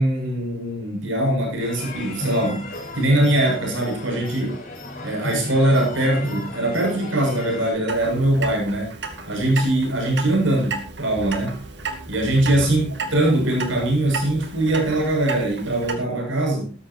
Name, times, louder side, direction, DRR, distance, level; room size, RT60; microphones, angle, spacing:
voice 1, 0.0-4.6 5.0-8.9 9.3-11.6 12.1-16.7, right 1 dB, 80° right, 7.3 m, -22 dB
sound 1, 1.6-7.7, left 1 dB, 40° left, 5.1 m, -34 dB
Clock, 7.9-16.0, right 4 dB, 60° right, 2.5 m, -33 dB
17.0 x 14.0 x 3.0 m
head